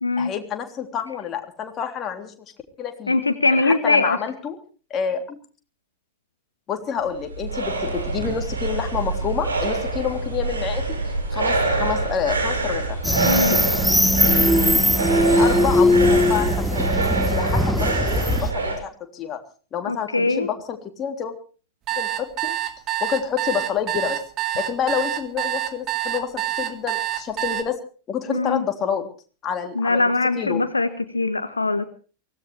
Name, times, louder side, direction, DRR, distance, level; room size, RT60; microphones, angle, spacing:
voice 1, 0.2-2.3 2.8-3.2 3.5-4.6 4.9-5.4 6.7-11.0 11.3-13.0 15.3-19.4 19.7-21.4 21.9-22.5 23.0-24.2 24.6-27.7 28.1-29.0 29.4-30.6, left 8 dB, 30° left, 4 dB, 3.3 m, -28 dB
voice 2, 3.1-4.2 13.3-13.6 19.9-20.5 28.3-28.6 29.7-30.9 31.1-31.9, left 3 dB, 80° left, 11 dB, 1.2 m, -21 dB
sound 1, 7.0-18.8, right 3 dB, 75° right, 5.4 m, -25 dB
sound 2, 13.0-18.5, left 1 dB, ahead, 1.2 m, -19 dB
sound 3, 21.9-27.6, right 13 dB, 35° right, 2.0 m, -26 dB
23.5 x 17.5 x 3.4 m, 0.39 s
figure-of-eight pair, 90°, 0 cm